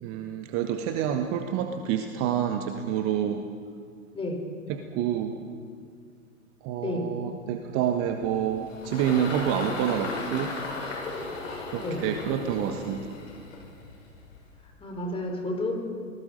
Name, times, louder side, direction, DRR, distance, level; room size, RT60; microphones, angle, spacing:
voice 1, 0.0-3.4 4.7-5.3 6.6-10.5 11.7-13.1, right 9 dB, 30° right, 6 dB, 1.3 m, -28 dB
Engine, 8.0-14.6, left 3 dB, 65° left, 7.0 m, -36 dB
voice 2, 14.8-15.7, left 2 dB, 15° left, 2 dB, 4.3 m, -30 dB
26.5 x 19.5 x 5.2 m, 2.2 s
figure-of-eight pair, 100°, 41 cm